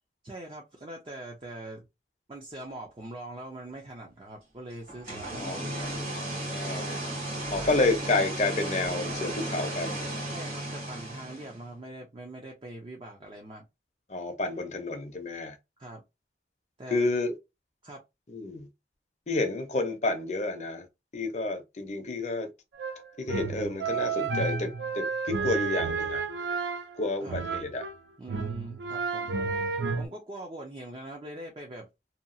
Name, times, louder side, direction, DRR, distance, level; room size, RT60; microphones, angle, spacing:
voice 1, 0.2-1.9 2.3-6.0 7.5-7.7 10.3-13.7 15.8-16.0 16.8-17.1 17.8-18.0 27.2-27.4 28.2-29.4 30.0-31.9, right 1 dB, 30° right, 0.5 m, -42 dB
sound 1, 4.9-11.6, right 1 dB, 55° right, 1.7 m, -34 dB
voice 2, 5.3-6.9 7.5-9.9 14.1-15.6 16.9-17.4 18.3-18.7 19.3-20.9 21.1-22.5 23.2-26.2 27.0-27.9, left 2 dB, 40° left, 0.6 m, -30 dB
sound 2, 22.7-28.0 28.3-30.1, right 5 dB, 80° right, 0.5 m, -31 dB
2.8 x 2.3 x 2.6 m
head